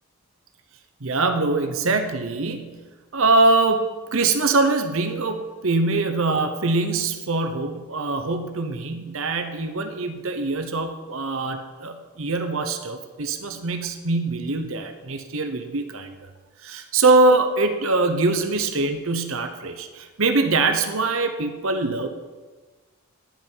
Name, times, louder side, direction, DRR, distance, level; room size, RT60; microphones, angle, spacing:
voice 1, 1.0-2.8 3.1-16.3 16.6-22.1, right 3 dB, 65° right, 7 dB, 0.9 m, -23 dB
11.5 x 5.7 x 8.9 m, 1.3 s
head